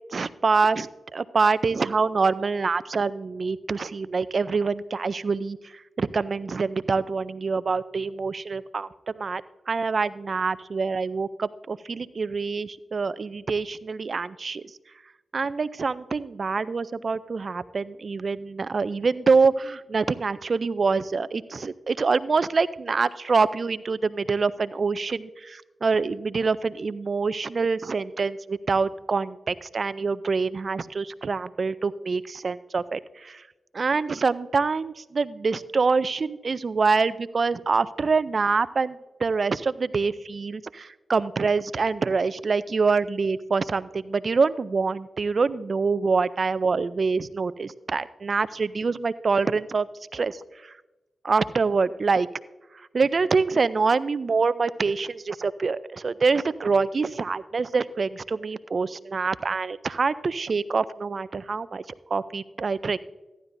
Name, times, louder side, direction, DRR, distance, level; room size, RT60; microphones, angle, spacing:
voice 1, 0.1-14.6 15.3-33.4 33.7-49.9 50.1-50.7 51.2-52.3 52.9-61.9 62.1-63.0, right 4 dB, 60° right, 16 dB, 0.4 m, -25 dB
14.5 x 11.0 x 2.6 m, 1.1 s
supercardioid pair, 40°, 0 cm